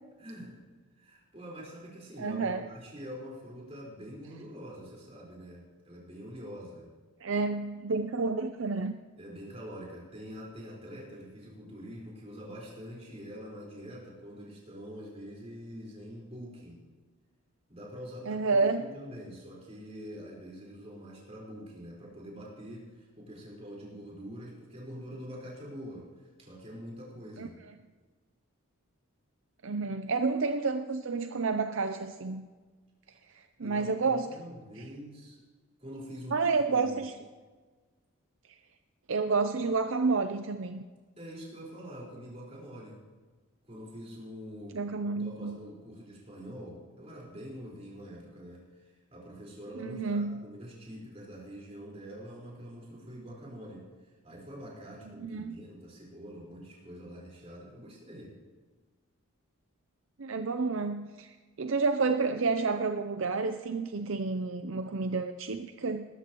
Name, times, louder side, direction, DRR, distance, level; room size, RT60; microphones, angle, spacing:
voice 1, 0.2-0.6 1.0-6.9 9.2-16.8 17.7-27.6 33.6-35.4 35.8-36.9 41.2-43.0 43.6-58.3, equal, 30° right, -4 dB, 4.6 m, -45 dB
voice 2, 2.2-2.6 7.2-9.0 18.3-18.9 27.4-27.5 29.6-32.4 33.3-34.4 36.3-37.1 39.1-40.8 44.7-45.6 49.8-50.4 55.2-55.5 60.2-66.1, right 4 dB, 60° right, 8 dB, 0.6 m, -30 dB
20.5 x 13.0 x 3.0 m, 1.4 s
head